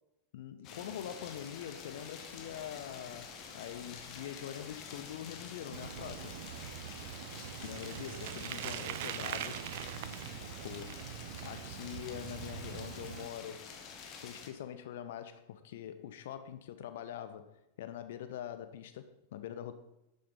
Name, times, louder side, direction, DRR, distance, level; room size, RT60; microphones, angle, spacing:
voice 1, 0.3-6.4 7.6-9.7 10.6-11.1 11.4-13.7 14.1-19.7, left 10 dB, 55° left, 1.0 m, -44 dB
sound 1, 0.6-14.5, left 6 dB, 35° left, 2.5 m, -48 dB
Bicycle, 5.7-13.3, right 11 dB, 50° right, 0.8 m, -43 dB
12.0 x 10.5 x 5.5 m
figure-of-eight pair, 90°, 0 cm